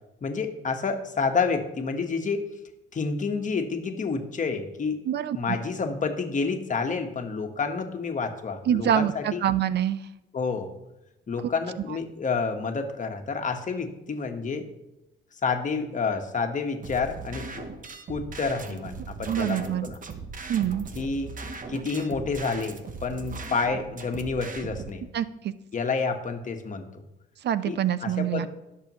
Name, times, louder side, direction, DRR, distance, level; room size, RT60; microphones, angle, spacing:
voice 1, 0.2-2.4 2.9-5.0 5.3-9.4 10.3-10.7 11.3-14.7 15.4-17.6 18.1-20.0 20.9-21.3 21.7-25.0 25.7-27.0 27.6-28.5, left 4 dB, 40° left, 5 dB, 1.4 m, -29 dB
voice 2, 5.1-5.6 8.7-10.0 19.3-19.9 20.5-20.9 25.1-25.5 27.4-28.5, right 10 dB, 60° right, 15 dB, 0.5 m, -25 dB
sound 1, 16.8-24.9, right 4 dB, 40° right, 1.1 m, -39 dB
18.0 x 6.7 x 3.1 m, 0.93 s
cardioid pair, 90°, 20 cm